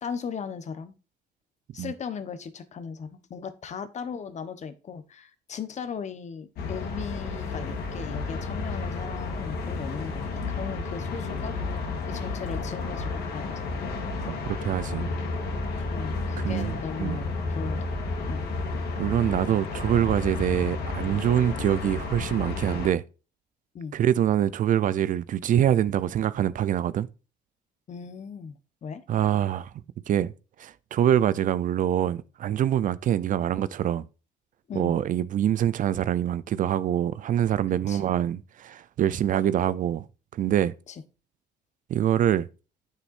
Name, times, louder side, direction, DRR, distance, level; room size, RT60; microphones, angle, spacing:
voice 1, 0.0-0.9 1.7-11.8 12.1-13.8 15.9-17.9 18.3-18.4 23.7-23.9 27.9-29.0 34.7-34.9 37.9-38.0 40.9-41.0, left 6 dB, 45° left, 1.1 m, -38 dB
sound 1, 6.6-22.9, left 3 dB, 70° left, 2.5 m, -32 dB
voice 2, 14.3-15.2 16.4-16.7 17.0-17.2 19.0-23.0 23.9-27.1 29.1-29.7 30.1-30.3 30.6-34.1 34.7-40.0 40.3-40.7 41.9-42.5, right 10 dB, 50° right, 0.5 m, -25 dB
9.1 x 6.7 x 2.6 m
cardioid pair, 110°, 17 cm